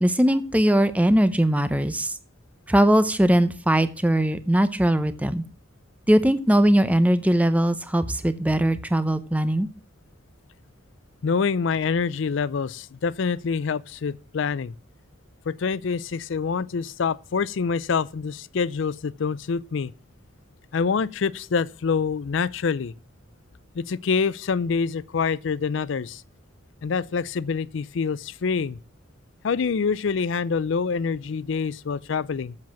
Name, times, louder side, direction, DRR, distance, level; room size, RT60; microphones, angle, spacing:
voice 1, 0.0-2.2 2.7-5.4 6.1-9.7, right 1 dB, 5° right, 0.6 m, -20 dB
voice 2, 11.2-14.7 15.5-19.9 20.7-22.9 23.8-26.2 26.8-28.8 29.4-32.6, left 5 dB, 65° left, 0.4 m, -26 dB
7.6 x 7.5 x 7.3 m
head